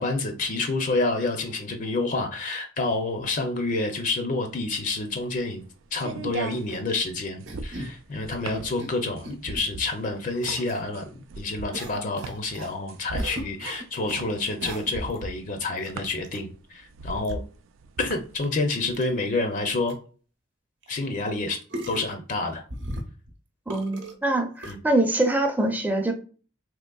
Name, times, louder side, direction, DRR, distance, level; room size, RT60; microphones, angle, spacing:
voice 1, 0.0-5.6 5.9-11.1 11.4-17.4 18.0-20.0 20.9-21.6 21.9-22.6 24.7-24.8, left 3 dB, 40° left, 0.5 m, -28 dB
sound 1, 4.6-18.4, right 3 dB, 90° right, 0.4 m, -38 dB
sound 2, 6.7-7.0 7.5-7.9 8.5-8.9 9.2-9.6 10.4-10.8 11.7-12.7 13.2-14.3 14.6-15.2 15.8-15.9 16.2-16.4 17.2-17.3 18.0-18.1 18.4-18.5 18.9-19.0 19.6-19.7 19.9-20.0 20.8-20.9 21.7-22.2 22.7-23.3 23.7-24.2 24.6-24.7, right 1 dB, 65° right, 0.8 m, -37 dB
voice 2, 23.7-26.1, right 2 dB, 10° right, 0.5 m, -24 dB
3.6 x 3.0 x 2.2 m
head